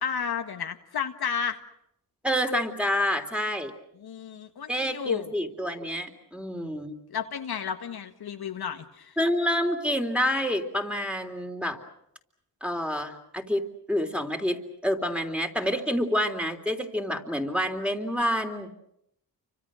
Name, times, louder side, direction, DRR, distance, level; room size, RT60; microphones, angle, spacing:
voice 1, 0.0-1.6 4.0-5.3 7.1-9.2, left 7 dB, 70° left, 6 dB, 1.7 m, -32 dB
voice 2, 2.2-3.7 4.7-7.0 9.2-11.8 12.6-13.6 13.9-18.7, equal, 5° right, 5 dB, 3.5 m, -28 dB
29.5 x 25.5 x 6.4 m, 0.77 s
cardioid pair, 65°, 40 cm